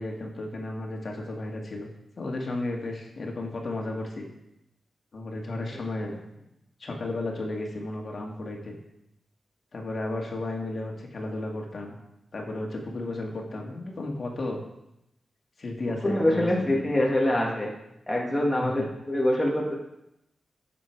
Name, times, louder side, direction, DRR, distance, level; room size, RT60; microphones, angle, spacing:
voice 1, 0.0-1.9 2.2-4.3 5.1-6.1 6.8-8.8 9.7-12.0 12.3-14.6 15.6-17.0 18.6-18.9, left 2 dB, 40° left, 0 dB, 2.0 m, -33 dB
voice 2, 16.0-17.7 18.1-19.7, left 1 dB, 10° left, -3 dB, 1.8 m, -25 dB
16.0 x 7.2 x 4.6 m, 0.85 s
wide cardioid pair, 170°, 0 cm